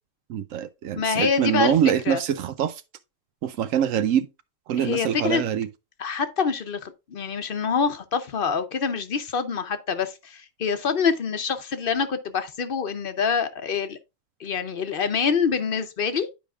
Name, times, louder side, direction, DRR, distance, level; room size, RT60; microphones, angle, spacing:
voice 1, 0.3-2.8 3.4-4.3 4.7-5.7, right 9 dB, 75° right, 0.9 m, -24 dB
voice 2, 1.0-1.7 2.1-2.2 4.8-5.4 6.0-14.0 14.4-16.3, left 6 dB, 50° left, 0.8 m, -26 dB
10.5 x 5.0 x 2.4 m
omnidirectional pair, 1.4 m